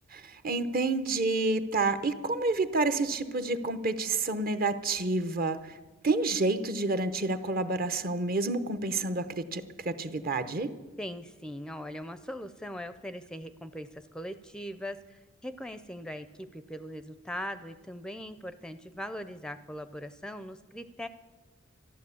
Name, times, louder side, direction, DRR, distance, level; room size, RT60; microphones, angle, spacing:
voice 1, 0.1-5.8 6.0-10.7, right 3 dB, 45° right, 12 dB, 0.9 m, -29 dB
voice 2, 11.0-21.1, equal, 5° left, 11 dB, 0.5 m, -40 dB
13.0 x 11.5 x 8.4 m, 1.2 s
head